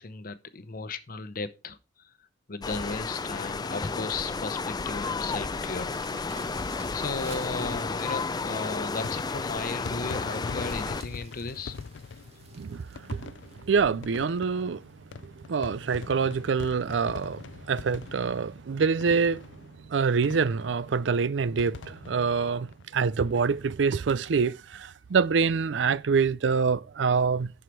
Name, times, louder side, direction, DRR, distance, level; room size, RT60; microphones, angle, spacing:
voice 1, 0.0-1.8 2.5-6.1 6.9-11.8, left 4 dB, 50° left, 0.8 m, -35 dB
sound 1, 2.6-11.0, left 4 dB, 25° left, 0.4 m, -32 dB
sound 2, 5.0-14.9 15.5-15.6 16.0-16.1 16.4-16.5 16.9-17.2 18.1-18.2, right 4 dB, 35° right, 2.0 m, -52 dB
sound 3, 7.6-23.5 23.9-24.0 24.1-24.2 25.5-25.8, left 5 dB, 85° left, 0.5 m, -44 dB
voice 2, 13.7-14.8 15.5-19.4 19.9-22.7 22.9-27.5, right 5 dB, 85° right, 0.5 m, -25 dB
11.5 x 4.9 x 4.5 m
head